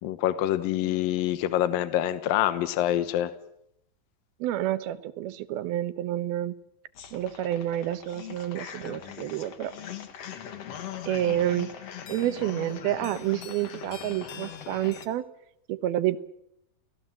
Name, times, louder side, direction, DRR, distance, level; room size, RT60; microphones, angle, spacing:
voice 1, 0.0-3.3, left 12 dB, 75° left, 11 dB, 2.7 m, -26 dB
voice 2, 4.4-6.6 7.1-9.7 11.1-11.7 12.1-15.3 15.7-16.2, right 13 dB, 85° right, 12 dB, 3.0 m, -29 dB
sound 1, 7.0-15.1, left 9 dB, 50° left, 2.3 m, -41 dB
30.0 x 19.5 x 7.7 m, 0.78 s
omnidirectional pair, 4.3 m